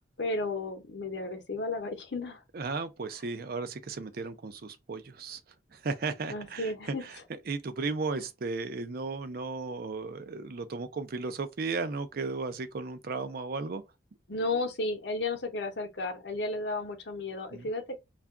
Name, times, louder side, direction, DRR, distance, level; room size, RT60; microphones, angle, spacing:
voice 1, 0.2-2.4 6.3-7.1 14.3-18.0, left 2 dB, 70° left, 0.8 m, -33 dB
voice 2, 2.5-5.4 5.7-6.7 7.5-13.8 17.5-17.7, right 4 dB, 55° right, 0.5 m, -35 dB
2.4 x 2.2 x 3.5 m
head